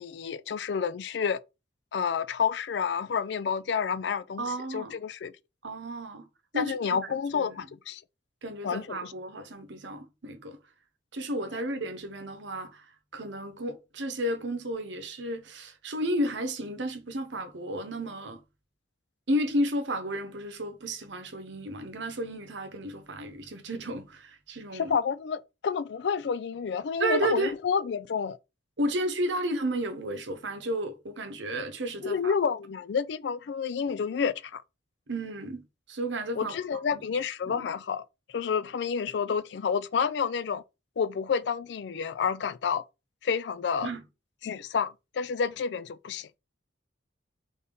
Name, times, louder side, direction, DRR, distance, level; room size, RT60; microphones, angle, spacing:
voice 1, 0.0-1.4 1.9-5.3 6.5-8.0 8.6-9.1 24.7-28.4 32.0-34.6 36.4-40.6 41.0-42.8 43.2-43.9 44.4-46.4, left 6 dB, 65° left, 0.3 m, -29 dB
voice 2, 4.4-4.9 5.6-6.3 6.5-7.0 7.3-7.6 8.4-10.6 11.1-12.9 13.1-18.4 19.3-24.9 27.0-27.5 28.8-32.3 35.1-37.1 37.5-37.6 43.8-44.0, right 1 dB, 75° right, 1.0 m, -32 dB
4.0 x 3.5 x 3.8 m
head